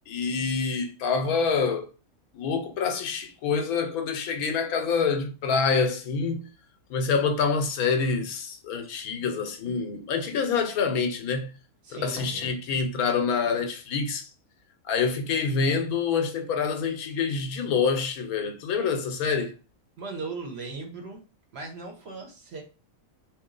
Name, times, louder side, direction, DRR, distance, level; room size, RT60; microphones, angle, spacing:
voice 1, 0.1-1.9 2.3-6.4 6.9-11.5 11.9-14.3 14.8-19.5, left 5 dB, 90° left, 1.2 m, -26 dB
voice 2, 11.8-12.5 20.0-21.2 21.5-22.6, right 3 dB, 55° right, 0.9 m, -38 dB
2.9 x 2.7 x 3.8 m
omnidirectional pair, 1.5 m